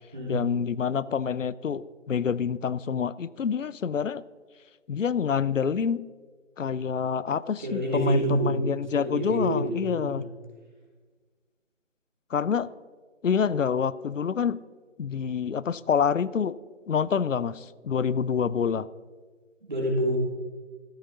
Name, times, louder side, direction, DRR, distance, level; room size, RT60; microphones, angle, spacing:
voice 1, 0.3-4.2 4.9-6.0 6.6-10.3 12.3-12.7 13.2-14.6 15.0-16.6 16.9-18.9, left 7 dB, 85° left, 19 dB, 0.6 m, -27 dB
voice 2, 7.6-8.6 8.9-10.2 19.6-20.2, right 1 dB, 35° right, -2 dB, 2.8 m, -27 dB
14.0 x 9.2 x 4.0 m, 1.5 s
figure-of-eight pair, 175°, 37 cm